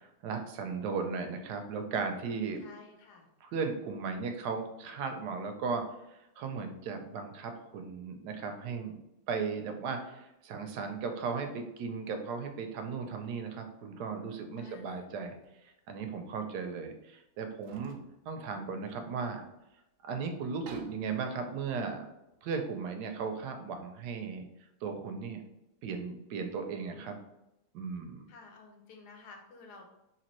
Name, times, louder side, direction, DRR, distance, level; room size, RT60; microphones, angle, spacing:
voice 1, 0.0-2.6 3.4-5.8 6.1-9.0 9.3-15.4 15.9-19.5 20.0-22.0 22.4-24.5 24.8-25.4 25.8-27.2 27.7-28.3, right 5 dB, 85° right, 6 dB, 1.2 m, -36 dB
voice 2, 2.6-3.3 14.6-15.1 28.3-29.8, left 4 dB, 85° left, 3 dB, 1.2 m, -52 dB
sound 1, 14.7-15.0 15.4-15.5 16.8-16.9 17.5-19.7 20.0-20.1 20.4-22.9, right 4 dB, 70° right, 0.8 m, -55 dB
3.1 x 2.9 x 3.0 m, 0.90 s
omnidirectional pair, 1.7 m